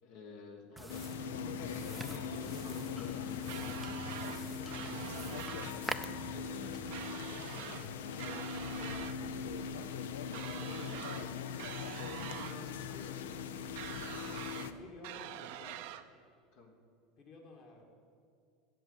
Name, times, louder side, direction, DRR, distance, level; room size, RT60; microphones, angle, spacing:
voice 1, 0.0-5.0 6.0-7.0 7.5-10.1 10.3-11.4 11.9-13.4 15.6-15.8 16.5-16.7, left 3 dB, 70° left, 2 dB, 1.5 m, -52 dB
sound 1, 0.8-7.1, right 2 dB, 10° right, 0.4 m, -46 dB
sound 2, 0.9-14.7, left 7 dB, 85° left, 0.5 m, -41 dB
sound 3, 3.5-4.4 4.7-5.8 6.9-7.9 8.2-9.2 10.3-11.3 11.6-12.6 13.8-14.7 15.0-16.0, right 13 dB, 70° right, 0.5 m, -45 dB
voice 2, 14.2-15.8 17.2-17.8, left 3 dB, 50° left, 1 dB, 2.1 m, -53 dB
7.7 x 7.7 x 8.1 m, 2.4 s
supercardioid pair, 100°, 0 cm